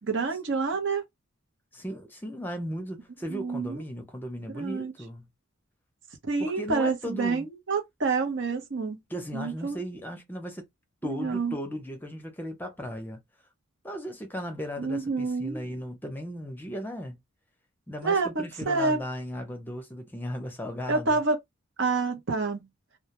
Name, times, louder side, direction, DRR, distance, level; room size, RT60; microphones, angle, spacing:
voice 1, 0.0-1.0 3.3-3.8 4.5-4.9 6.2-9.0 9.3-9.8 11.0-11.6 14.8-15.6 18.0-19.0 20.9-21.4 21.8-22.7, right 4 dB, 60° right, 0.8 m, -28 dB
voice 2, 1.7-5.3 6.4-7.5 9.1-10.7 11.0-13.2 13.8-17.2 17.9-21.2, equal, 10° left, 0.6 m, -36 dB
2.2 x 2.2 x 2.9 m
head